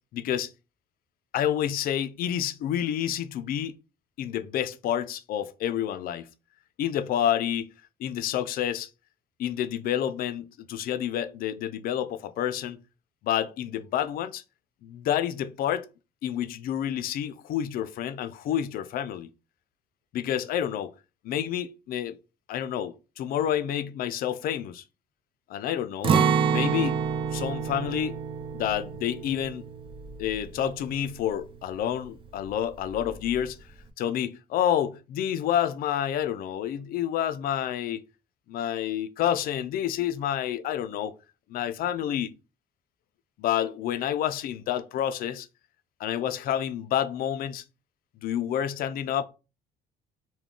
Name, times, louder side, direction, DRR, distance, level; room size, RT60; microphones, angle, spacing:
voice 1, 0.1-0.5 1.3-3.8 4.2-6.3 6.8-7.7 8.0-8.9 9.4-12.8 13.2-14.4 14.8-15.9 16.2-19.3 20.1-20.9 21.2-22.2 22.5-24.8 25.5-26.2 26.5-27.0 27.3-28.2 28.5-29.7 30.2-33.6 34.0-38.0 38.5-41.1 41.5-42.3 43.4-45.5 46.0-47.6 48.2-49.2, left 10 dB, 60° left, 0.4 m, -29 dB
Acoustic guitar, 26.0-31.9 32.2-32.4 32.9-33.4, right 6 dB, 30° right, 0.4 m, -28 dB
2.3 x 2.2 x 3.6 m
cardioid pair, 110°, 17 cm